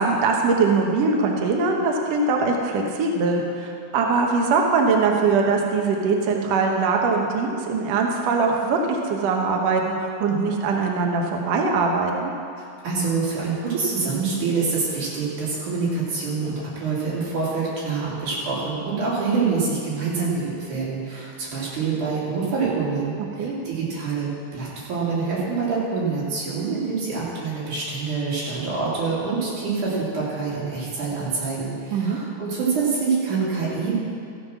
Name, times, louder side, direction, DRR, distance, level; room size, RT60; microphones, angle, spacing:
voice 1, 0.0-8.8 9.0-12.3 23.4-23.6 31.9-32.2, right 4 dB, 85° right, 1 dB, 1.4 m, -22 dB
voice 2, 12.8-34.0, right 4 dB, 55° right, -7 dB, 4.1 m, -26 dB
14.0 x 7.4 x 6.0 m, 2.4 s
omnidirectional pair, 4.6 m